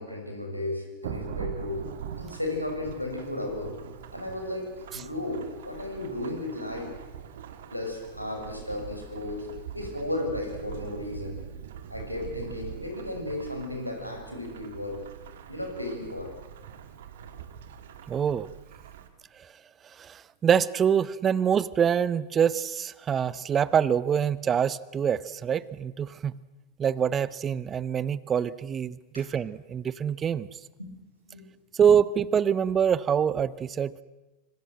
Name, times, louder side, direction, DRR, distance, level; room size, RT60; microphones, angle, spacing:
voice 1, 0.0-1.9 2.2-3.7 4.1-6.9 7.7-9.5 9.7-11.4 11.9-15.0 15.5-16.3 17.2-17.3 29.1-29.3 30.8-31.0 31.2-31.5, left 1 dB, 90° left, 2 dB, 6.3 m, -34 dB
Thunderstorm / Rain, 1.0-19.1, right 9 dB, 60° right, 2.5 m, -43 dB
voice 2, 18.1-18.5 20.0-26.4 26.8-30.5 31.8-34.0, right 8 dB, 25° right, 19 dB, 0.9 m, -25 dB
25.5 x 25.5 x 7.7 m, 1.1 s
figure-of-eight pair, 90°, 0 cm